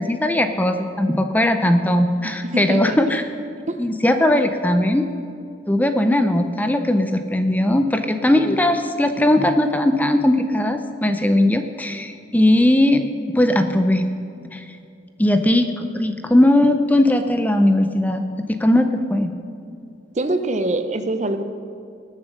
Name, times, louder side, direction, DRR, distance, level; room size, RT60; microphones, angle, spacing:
voice 1, 0.0-3.2 3.8-5.1 5.7-13.0 13.3-14.1 14.5-14.6 15.2-19.3, left 1 dB, 10° left, 7 dB, 0.5 m, -18 dB
voice 2, 2.2-3.0 3.7-3.8 20.2-21.4, right 2 dB, 40° right, 9 dB, 0.7 m, -24 dB
19.5 x 7.4 x 6.5 m, 2.5 s
head